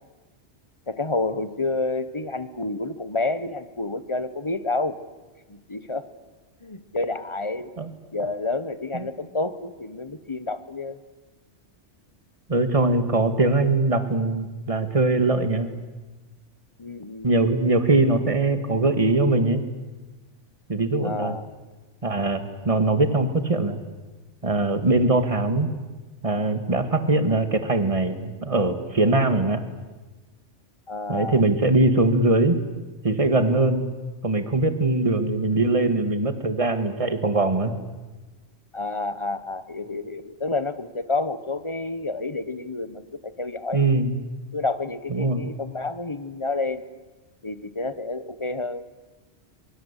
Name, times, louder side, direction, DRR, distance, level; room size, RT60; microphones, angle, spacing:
voice 1, 0.9-5.0 5.5-6.1 6.6-7.7 8.1-11.0 16.8-17.3 21.0-21.5 30.9-31.4 38.7-43.9 44.5-46.8 47.4-48.9, left 3 dB, 25° left, 13 dB, 1.2 m, -29 dB
voice 2, 12.5-15.7 17.2-19.6 20.7-21.4 22.0-23.8 24.4-25.7 26.2-29.6 31.1-32.6 33.0-33.9 34.2-37.7 43.7-44.2 45.1-45.4, right 2 dB, 30° right, 10 dB, 1.9 m, -21 dB
24.0 x 23.5 x 8.3 m, 1.2 s
omnidirectional pair, 1.2 m